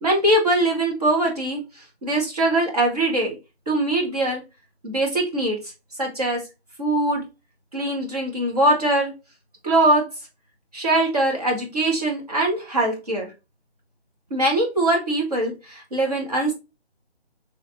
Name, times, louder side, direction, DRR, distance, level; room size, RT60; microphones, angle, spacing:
voice 1, 0.0-3.4 3.7-4.4 4.8-5.6 6.0-6.4 6.8-7.3 7.7-9.1 9.6-10.1 10.7-13.3 14.3-16.5, right 1 dB, 35° right, 0 dB, 1.1 m, -22 dB
3.3 x 3.1 x 2.5 m, 0.26 s
figure-of-eight pair, 170°, 33 cm